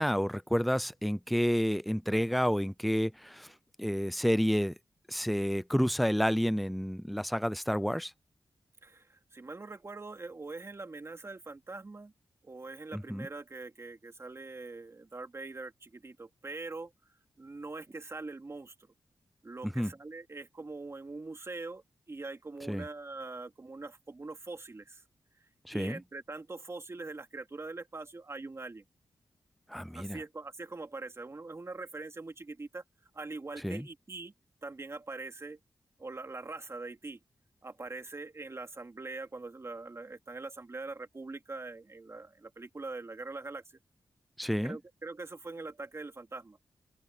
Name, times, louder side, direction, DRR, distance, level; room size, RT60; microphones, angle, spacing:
voice 1, 0.0-3.5 3.8-4.7 5.1-8.1 12.9-13.3 19.6-19.9 22.7-22.8 25.7-26.0 29.7-30.2 33.6-33.9 44.4-44.8, equal, ahead, 0.5 m, -30 dB
voice 2, 8.8-12.1 12.4-16.9 17.4-18.9 19.4-25.0 25.4-28.8 29.9-32.8 33.1-34.3 34.6-35.6 36.0-37.2 37.6-43.8 44.6-46.6, right 3 dB, 35° right, 2.7 m, -43 dB
open air
cardioid pair, 75°, 8 cm